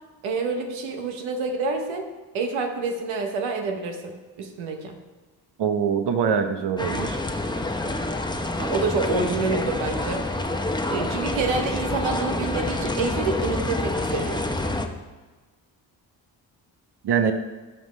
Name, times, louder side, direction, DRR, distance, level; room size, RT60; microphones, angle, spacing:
voice 1, 0.2-2.1 2.3-4.9 8.6-10.3 10.9-14.5, right 4 dB, 90° right, 4 dB, 1.0 m, -27 dB
voice 2, 5.6-7.2 17.0-17.3, right 7 dB, 60° right, 8 dB, 0.9 m, -23 dB
sound 1, 6.8-14.9, left 2 dB, 10° left, 0.8 m, -27 dB
13.0 x 5.4 x 3.2 m, 1.3 s
supercardioid pair, 55°, 46 cm